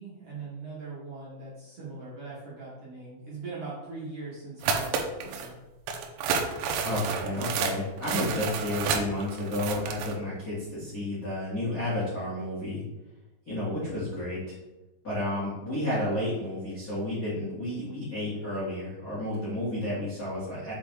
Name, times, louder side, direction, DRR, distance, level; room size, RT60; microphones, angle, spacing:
voice 1, 0.0-5.5, right 3 dB, 60° right, -9 dB, 1.6 m, -41 dB
sound 1, 4.6-5.5 5.9-10.1, right 5 dB, 85° right, 3.2 m, -30 dB
voice 2, 6.8-12.8 13.5-14.5 15.0-20.7, left 1 dB, 55° left, -10 dB, 0.9 m, -31 dB
7.5 x 4.6 x 3.6 m, 1.1 s
omnidirectional pair, 5.6 m